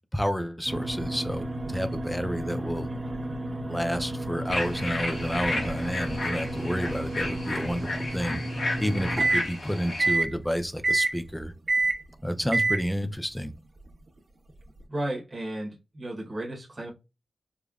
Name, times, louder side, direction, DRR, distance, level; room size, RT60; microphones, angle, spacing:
voice 1, 0.1-2.9 3.6-8.4 8.8-11.5 12.2-13.5, equal, 5° left, 0.5 m, -30 dB
sound 1, 0.7-9.5 10.0-10.3 10.8-11.2 11.7-12.0 12.5-12.8, right 2 dB, 60° right, 1.1 m, -29 dB
sound 2, 4.5-10.2, left 2 dB, 80° left, 1.3 m, -33 dB
voice 2, 14.9-16.9, right 1 dB, 30° right, 1.0 m, -34 dB
5.1 x 2.2 x 2.4 m
wide cardioid pair, 110°, 0 cm